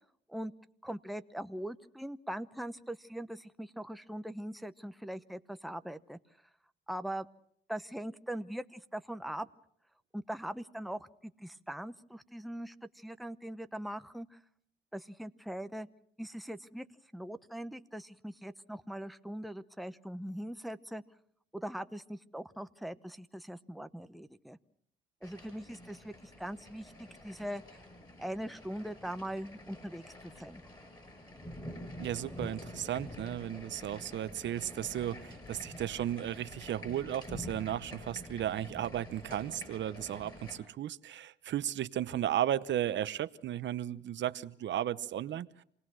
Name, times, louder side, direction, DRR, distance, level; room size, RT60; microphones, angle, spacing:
voice 1, 0.8-6.2 6.9-7.3 7.7-9.5 10.1-14.4 14.9-15.9 16.2-16.9 17.1-21.0 21.5-24.6 25.2-27.8 28.2-30.6, right 1 dB, ahead, 0.9 m, -41 dB
sound 1, 25.2-40.6, left 1 dB, 20° left, 7.7 m, -48 dB
voice 2, 32.0-45.5, right 11 dB, 65° right, 0.9 m, -35 dB
28.0 x 19.0 x 6.3 m
cardioid pair, 90°, 20 cm